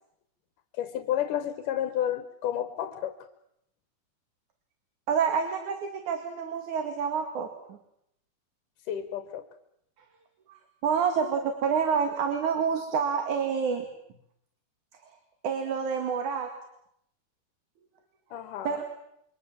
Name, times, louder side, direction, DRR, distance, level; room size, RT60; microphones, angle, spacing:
voice 1, 0.7-3.2 8.9-9.5 18.3-18.8, left 10 dB, 85° left, 9 dB, 2.8 m, -31 dB
voice 2, 5.1-7.5 10.5-13.9 15.4-16.5 18.7-18.8, right 6 dB, 70° right, 5 dB, 3.5 m, -28 dB
28.0 x 24.5 x 7.3 m, 0.77 s
omnidirectional pair, 3.6 m